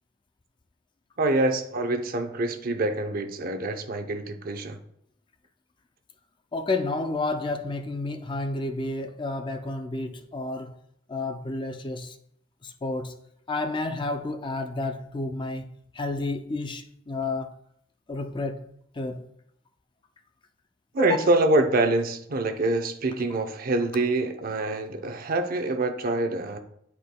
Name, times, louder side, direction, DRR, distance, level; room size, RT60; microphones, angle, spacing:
voice 1, 1.2-4.8 20.9-26.6, right 2 dB, 50° right, 0.7 m, -25 dB
voice 2, 6.5-10.8 11.1-12.2 12.6-13.2 13.5-17.5 18.1-19.3 21.0-21.2, left 2 dB, 25° left, 0.4 m, -31 dB
11.0 x 4.6 x 2.2 m
head